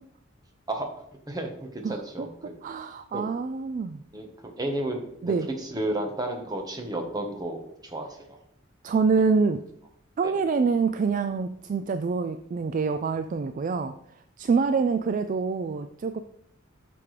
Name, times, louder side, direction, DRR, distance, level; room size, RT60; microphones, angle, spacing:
voice 1, 1.3-2.3 3.1-3.2 4.1-8.3 10.2-10.3, right 1 dB, 20° right, 3 dB, 1.2 m, -32 dB
voice 2, 1.8-2.3 2.6-4.0 5.2-5.5 8.8-9.6 10.2-13.9 14.4-16.2, right 5 dB, 40° right, 9 dB, 0.3 m, -26 dB
8.6 x 6.0 x 3.3 m, 0.74 s
head